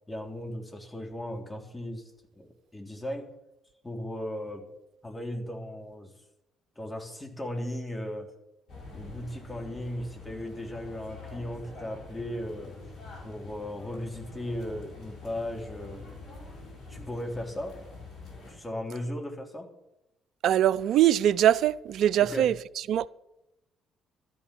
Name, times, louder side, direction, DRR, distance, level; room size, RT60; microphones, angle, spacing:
voice 1, 0.1-3.3 3.8-4.7 5.0-6.1 6.8-8.3 8.9-12.8 13.2-16.1 16.9-17.8 18.5-19.7 22.2-22.5, left 1 dB, 15° left, 3.4 m, -37 dB
sound 1, 8.7-18.5, left 3 dB, 60° left, 5.2 m, -45 dB
voice 2, 20.4-23.1, right 11 dB, 60° right, 0.4 m, -23 dB
12.5 x 9.9 x 6.1 m
hypercardioid pair, 50°, 0 cm